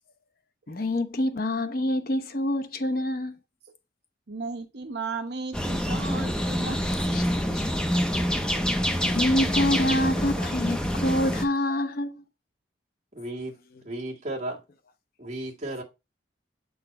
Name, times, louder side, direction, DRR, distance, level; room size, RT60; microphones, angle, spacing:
voice 1, 0.7-3.4 7.1-7.2 7.5-7.6 9.0-12.2, left 1 dB, 50° left, 0.8 m, -26 dB
voice 2, 4.3-6.8 8.1-8.2 8.5-8.6, right 3 dB, 55° right, 0.9 m, -35 dB
sound 1, 5.5-11.5, equal, 5° left, 0.7 m, -26 dB
voice 3, 13.1-13.6 13.8-14.6 15.2-15.8, right 1 dB, 35° right, 1.8 m, -34 dB
7.8 x 4.0 x 4.1 m
head